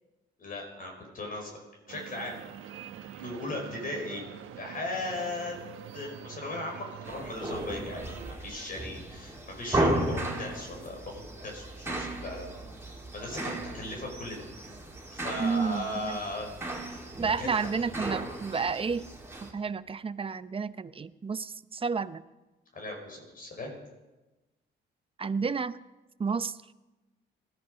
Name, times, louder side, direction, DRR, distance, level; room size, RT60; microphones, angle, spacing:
voice 1, 0.4-1.6 1.9-2.3 3.1-4.2 4.6-5.6 5.9-8.0 8.4-12.5 12.8-14.4 15.1-16.5 17.4-17.7 22.7-23.7, left 2 dB, 45° left, 1 dB, 5.1 m, -37 dB
sound 1, 1.9-8.3, right 9 dB, 85° right, 1.2 m, -45 dB
sound 2, 7.0-19.5, right 1 dB, 10° right, 4.0 m, -35 dB
voice 2, 15.4-16.2 17.2-19.1 19.4-22.2 25.2-25.8 26.2-26.6, right 5 dB, 25° right, 14 dB, 0.7 m, -31 dB
20.5 x 14.0 x 5.1 m, 1.1 s
cardioid pair, 90°, 20 cm